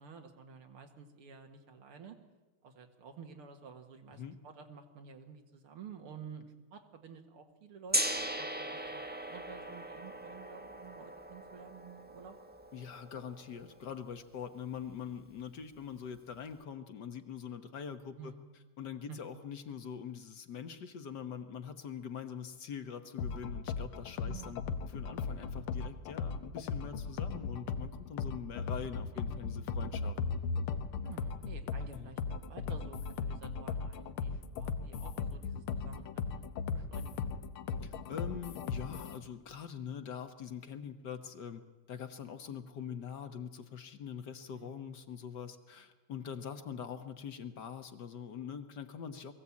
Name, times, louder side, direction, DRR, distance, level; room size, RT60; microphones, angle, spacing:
voice 1, 0.0-2.2 2.6-12.4 18.2-18.4 19.1-19.2 24.2-24.6 31.0-36.5 36.7-37.4 44.5-44.7 46.7-47.0, right 6 dB, 85° right, 4 dB, 2.6 m, -51 dB
Gong, 7.9-13.8, equal, 5° right, 0.9 m, -38 dB
voice 2, 12.7-18.3 18.8-30.2 31.9-32.1 37.8-41.6 41.9-49.3, left 7 dB, 55° left, 8 dB, 1.6 m, -44 dB
sound 1, 23.2-39.2, left 5 dB, 80° left, 1.9 m, -37 dB
22.0 x 15.5 x 8.5 m, 1.2 s
omnidirectional pair, 2.4 m